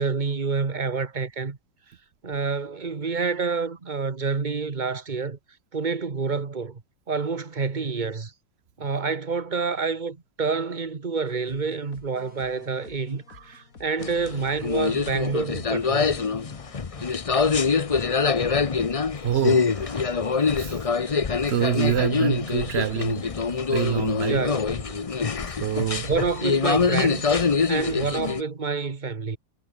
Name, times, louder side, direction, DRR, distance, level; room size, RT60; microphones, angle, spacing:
voice 1, 0.0-1.6 2.2-5.4 5.7-6.8 7.1-8.3 8.8-16.1 24.3-24.6 26.1-29.4, right 4 dB, 25° right, 1.4 m, -28 dB
sound 1, 11.3-26.9, left 5 dB, 45° left, 2.6 m, -49 dB
sound 2, 14.0-28.4, left 5 dB, 65° left, 0.3 m, -24 dB
voice 2, 19.2-20.2 20.5-21.2 21.5-23.2 23.7-24.5 24.9-25.1 25.5-26.1, right 10 dB, 70° right, 0.6 m, -27 dB
omnidirectional pair, 2.0 m